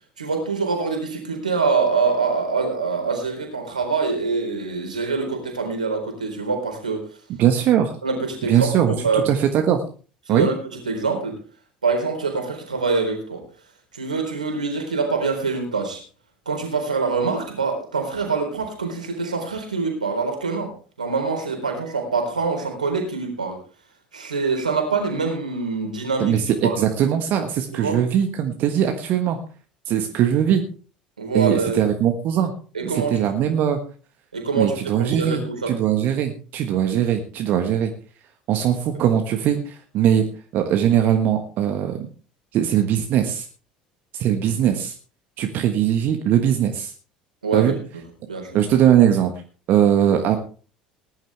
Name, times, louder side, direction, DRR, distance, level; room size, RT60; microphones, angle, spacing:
voice 1, 0.2-7.1 8.0-9.3 10.3-11.4 11.8-13.4 13.9-16.0 16.5-20.7 21.0-23.6 24.1-26.3 26.6-26.8 27.7-28.0 31.2-31.8 32.7-33.3 34.3-35.7 47.4-47.7 48.3-48.6, right 4 dB, 85° right, 3 dB, 4.0 m, -25 dB
voice 2, 7.3-8.0 8.4-9.8 10.3-10.5 26.2-29.4 29.9-30.6 31.3-32.5 32.8-33.8 34.6-37.9 38.5-40.3 40.5-42.1 42.5-43.5 44.1-44.9 45.4-46.9 47.5-47.8 48.5-49.3 49.7-50.4, right 10 dB, 50° right, 5 dB, 1.4 m, -20 dB
19.5 x 11.0 x 3.4 m, 0.39 s
figure-of-eight pair, 65°, 4 cm